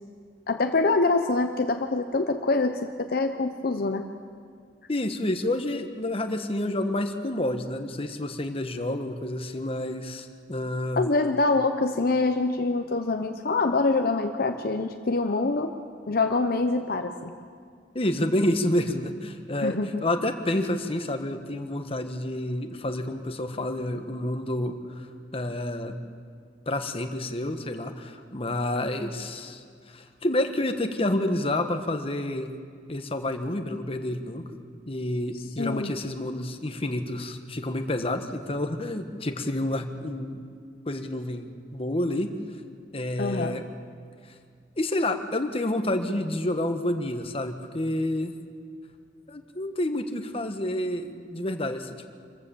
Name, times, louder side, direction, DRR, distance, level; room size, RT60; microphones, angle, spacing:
voice 1, 0.5-4.0 11.0-15.7 16.1-17.3 19.6-19.9 35.3-35.9 43.2-43.6, left 3 dB, 55° left, 6 dB, 0.8 m, -25 dB
voice 2, 4.9-11.1 17.9-25.1 25.3-26.0 26.7-32.5 32.9-34.4 34.9-40.4 40.9-42.3 42.9-43.7 44.8-48.3 49.3-52.1, left 1 dB, 30° left, 7 dB, 1.2 m, -29 dB
25.5 x 14.5 x 7.0 m, 2.1 s
head